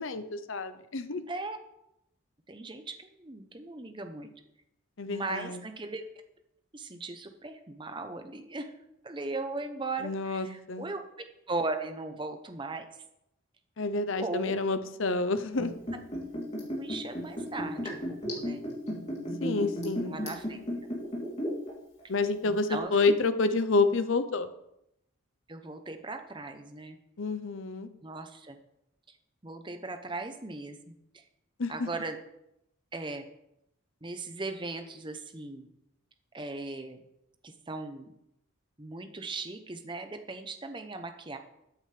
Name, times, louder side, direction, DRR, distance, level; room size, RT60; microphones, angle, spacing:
voice 1, 0.0-1.2 5.0-5.6 10.0-10.9 13.8-15.7 19.4-20.2 22.1-24.5 27.2-27.9 31.6-31.9, left 3 dB, 70° left, 11 dB, 0.8 m, -29 dB
voice 2, 1.3-1.6 2.5-4.3 5.1-6.0 6.7-8.7 9.0-11.0 11.5-12.8 14.2-14.6 16.8-18.6 20.1-20.6 22.4-23.1 25.5-27.0 28.0-28.6 29.4-31.2 31.7-32.2 32.9-33.3 34.0-35.7 36.3-37.0 37.4-38.1 38.8-41.4, right 3 dB, 25° right, 7 dB, 0.8 m, -38 dB
Liquid, 15.5-21.7 22.0-22.1, equal, 30° left, 3.2 m, -34 dB
13.5 x 8.9 x 3.4 m, 0.83 s
head